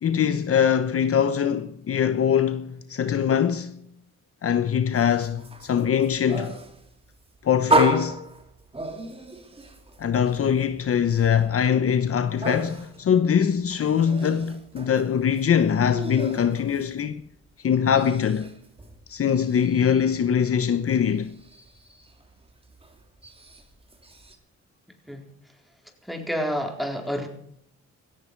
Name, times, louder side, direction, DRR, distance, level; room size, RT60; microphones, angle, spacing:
voice 1, 0.0-3.8 4.4-6.6 7.4-8.3 10.0-17.2 17.6-18.5 19.1-21.3, left 8 dB, 50° left, 1.0 m, -22 dB
sound 1, 4.9-17.4 17.7-24.4, right 1 dB, 20° right, 2.7 m, -33 dB
voice 2, 26.0-27.3, equal, ahead, 4.1 m, -29 dB
17.0 x 14.5 x 4.7 m
cardioid pair, 90°, 30 cm